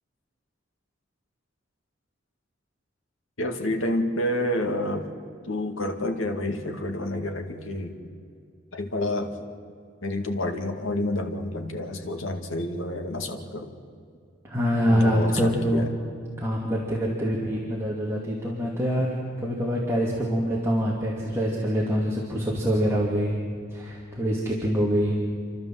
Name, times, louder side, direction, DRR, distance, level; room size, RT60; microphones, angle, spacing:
voice 1, 3.4-5.1 5.5-7.9 8.7-9.3 10.0-13.7 14.9-15.9, left 1 dB, 80° left, 5 dB, 2.2 m, -29 dB
voice 2, 14.4-15.9 16.4-23.3 23.7-25.3, equal, 15° right, -4 dB, 2.5 m, -25 dB
30.0 x 12.0 x 7.6 m, 2.3 s
head